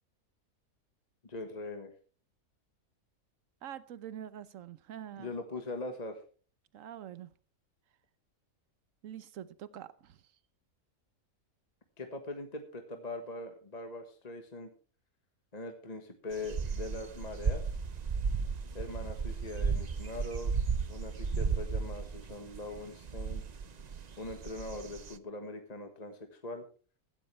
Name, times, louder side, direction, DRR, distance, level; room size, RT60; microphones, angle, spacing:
voice 1, 1.2-1.9 5.2-6.2 12.0-14.7 15.5-17.7 18.7-20.5 20.9-23.4 24.2-26.6, left 2 dB, 30° left, 1.5 m, -41 dB
voice 2, 3.6-5.4 6.7-7.3 9.0-10.2, right 10 dB, 65° right, 1.2 m, -45 dB
sound 1, 16.3-25.2, right 5 dB, 40° right, 0.6 m, -34 dB
16.0 x 13.0 x 3.3 m
omnidirectional pair, 1.5 m